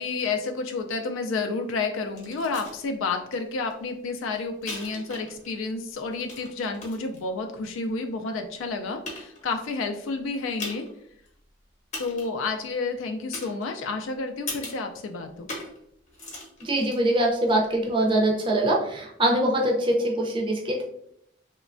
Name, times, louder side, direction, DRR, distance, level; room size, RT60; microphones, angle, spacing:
voice 1, 0.0-10.9 12.0-15.5, left 4 dB, 85° left, 5 dB, 0.3 m, -30 dB
sound 1, 2.1-2.8 3.3-3.4 3.7-5.6 5.9-7.2 7.9-8.0 8.6-8.7 9.1-9.7 10.6-11.0 11.3-11.4 11.9-12.4 13.3-14.0 14.5-14.9 15.5-15.8 16.1-17.5 18.4-18.5, left 2 dB, 35° left, 0.8 m, -39 dB
voice 2, 16.6-20.8, right 1 dB, 25° right, 0 dB, 0.5 m, -23 dB
3.1 x 2.1 x 2.4 m, 0.71 s
head